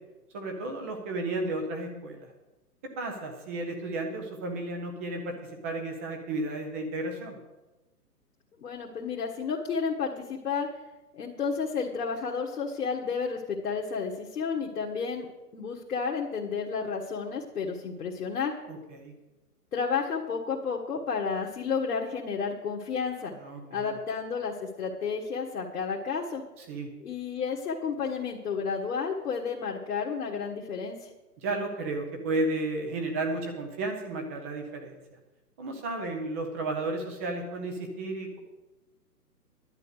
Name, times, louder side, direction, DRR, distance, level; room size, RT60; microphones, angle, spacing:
voice 1, 0.3-2.3 3.0-7.4 18.7-19.1 23.4-24.0 26.6-26.9 31.4-35.0 35.6-38.4, right 2 dB, 10° right, 3 dB, 0.5 m, -33 dB
voice 2, 8.6-10.7 11.1-18.5 19.7-23.3 23.7-26.4 27.0-31.1, left 5 dB, 65° left, -2 dB, 1.8 m, -31 dB
11.0 x 8.5 x 6.5 m, 1.0 s
hypercardioid pair, 135°, 47 cm